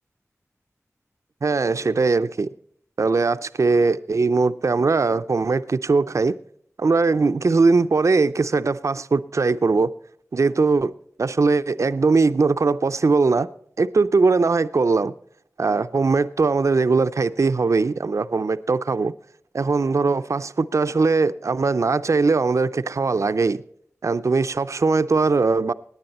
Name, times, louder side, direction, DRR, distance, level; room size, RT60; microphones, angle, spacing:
voice 1, 1.4-2.5 3.0-6.3 6.8-9.9 10.3-10.9 11.2-13.5 13.8-15.1 15.6-19.1 19.5-23.6 24.0-25.7, right 4 dB, 65° right, 0.5 m, -20 dB
18.5 x 9.6 x 4.2 m
wide cardioid pair, 55°, 6 cm